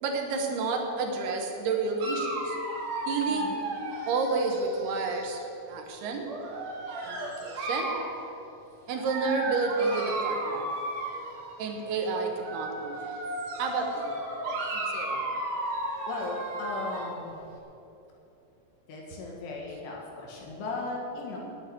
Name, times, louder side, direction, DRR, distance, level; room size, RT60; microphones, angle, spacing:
voice 1, 0.0-2.6 3.1-3.5 4.1-6.3 7.0-7.9 8.9-10.6 11.6-13.2 13.6-14.2 14.7-15.3, right 4 dB, 70° right, 2 dB, 2.7 m, -30 dB
Dog, 2.0-5.4 6.2-8.2 8.9-11.6 12.3-17.2, right 2 dB, 55° right, 2.1 m, -34 dB
voice 2, 3.3-3.6 11.7-11.9 16.1-17.4 18.9-21.4, left 3 dB, 70° left, -2 dB, 3.7 m, -37 dB
10.0 x 7.9 x 9.3 m, 2.9 s
omnidirectional pair, 5.4 m